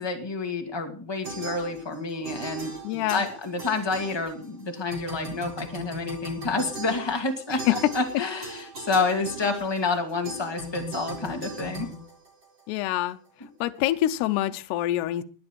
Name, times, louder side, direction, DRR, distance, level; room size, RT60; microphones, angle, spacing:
voice 1, 0.0-11.9, left 3 dB, 20° left, 3 dB, 0.6 m, -29 dB
sound 1, 1.2-2.0 2.2-4.6 4.9-12.8, right 2 dB, 25° right, 4.3 m, -38 dB
voice 2, 2.8-3.3 7.7-7.8 12.7-13.2 13.6-15.2, left 14 dB, 80° left, 8 dB, 2.8 m, -25 dB
20.5 x 9.8 x 4.4 m, 0.40 s
omnidirectional pair, 5.0 m